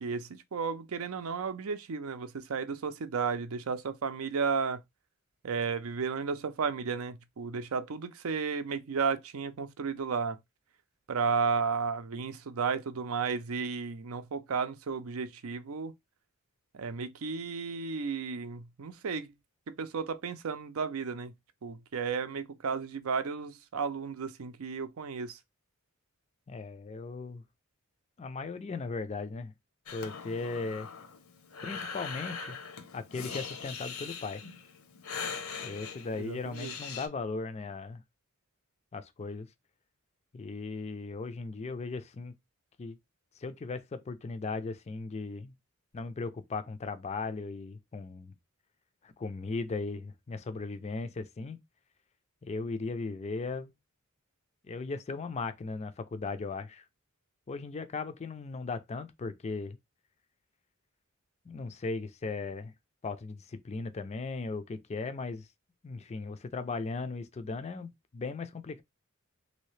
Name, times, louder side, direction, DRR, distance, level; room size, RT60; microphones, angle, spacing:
voice 1, 0.0-4.8 5.4-10.4 11.1-15.9 16.7-19.3 19.7-21.3 21.6-25.4 36.2-36.7, right 5 dB, 70° right, 0.5 m, -33 dB
voice 2, 26.5-27.4 28.2-29.5 29.9-30.9 31.6-32.6 32.9-34.4 35.6-38.0 38.9-39.5 40.3-42.3 42.8-43.0 43.4-45.5 45.9-48.3 49.0-51.6 52.4-53.7 54.7-56.8 57.5-59.8 61.5-62.7 63.0-65.5 65.8-68.8, left 3 dB, 30° left, 0.4 m, -37 dB
Breathing, 29.9-37.1, left 5 dB, 70° left, 0.7 m, -41 dB
3.1 x 2.7 x 3.2 m
head